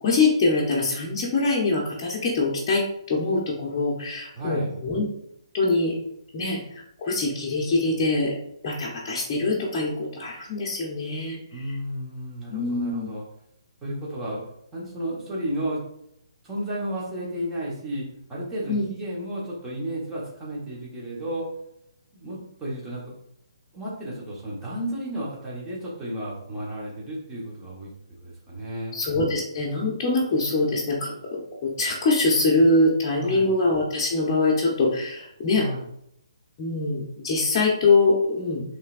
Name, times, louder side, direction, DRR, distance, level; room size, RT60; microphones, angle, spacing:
voice 1, 0.0-5.1 5.5-5.9 6.3-8.3 8.6-11.6 12.5-13.1 18.7-18.9 28.9-35.6 36.6-38.6, left 3 dB, 30° left, -5 dB, 0.8 m, -24 dB
voice 2, 4.3-4.7 11.5-13.2 13.8-14.4 14.7-15.8 16.4-21.5 22.1-23.1 23.7-27.9 28.2-29.0 33.2-33.5 35.6-35.8, right 1 dB, 15° right, -6 dB, 1.2 m, -33 dB
5.4 x 3.3 x 2.5 m, 0.77 s
hypercardioid pair, 150°, 3 cm